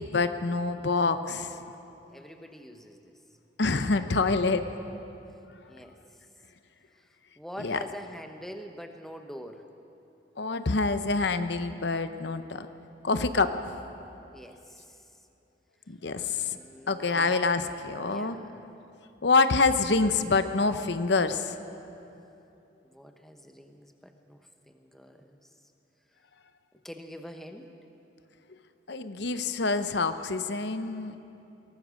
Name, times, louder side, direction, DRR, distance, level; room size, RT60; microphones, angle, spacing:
voice 1, 0.0-1.6 3.6-4.7 7.6-7.8 10.4-12.7 13.0-13.7 15.9-16.6 16.9-18.4 19.2-21.5 28.9-31.2, left 3 dB, 65° left, 10 dB, 0.8 m, -26 dB
voice 2, 2.1-3.1 5.7-6.0 7.4-9.6 14.3-15.0 16.5-17.4 18.0-18.6 22.8-24.4 24.7-25.4 26.8-27.7, equal, ahead, 5 dB, 1.0 m, -45 dB
22.5 x 18.5 x 6.4 m, 2.8 s
head